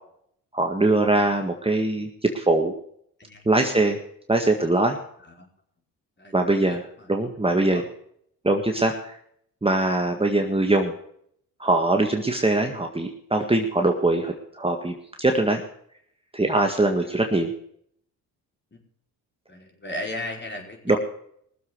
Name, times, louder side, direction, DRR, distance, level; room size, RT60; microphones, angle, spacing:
voice 1, 0.5-2.7 3.5-4.0 4.3-5.0 6.3-7.8 8.4-9.1 9.6-10.9 11.6-15.6 16.3-17.5 20.9-21.0, right 2 dB, 15° right, 3 dB, 1.8 m, -22 dB
voice 2, 3.2-3.8 5.2-5.5 6.2-7.1 7.4-7.8 16.5-16.6 17.0-17.2 18.7-18.8 19.5-21.0, left 1 dB, 30° left, 1 dB, 5.1 m, -37 dB
19.0 x 7.5 x 6.6 m, 0.67 s
supercardioid pair, 65°, 38 cm